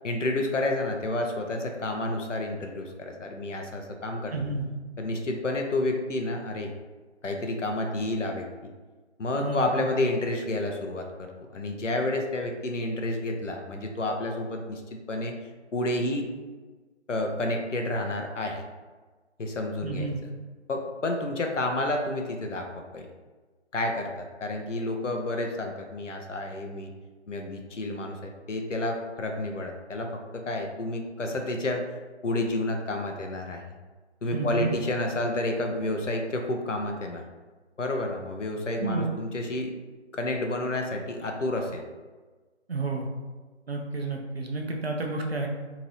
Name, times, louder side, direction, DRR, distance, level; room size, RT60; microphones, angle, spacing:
voice 1, 0.0-4.4 5.0-6.7 7.2-8.5 9.2-11.3 11.5-15.4 15.7-16.3 17.1-18.6 19.4-20.1 20.7-22.7 22.9-23.1 23.7-26.9 27.3-31.8 32.2-33.6 34.2-37.2 37.8-39.7 40.1-41.8, left 2 dB, 85° left, 3 dB, 0.7 m, -30 dB
voice 2, 4.3-4.7 9.4-9.9 19.8-20.2 34.3-34.8 38.8-39.1 42.7-43.1 43.7-45.5, right 3 dB, 60° right, 2 dB, 0.6 m, -30 dB
2.8 x 2.6 x 3.2 m, 1.3 s
figure-of-eight pair, 165°, 36 cm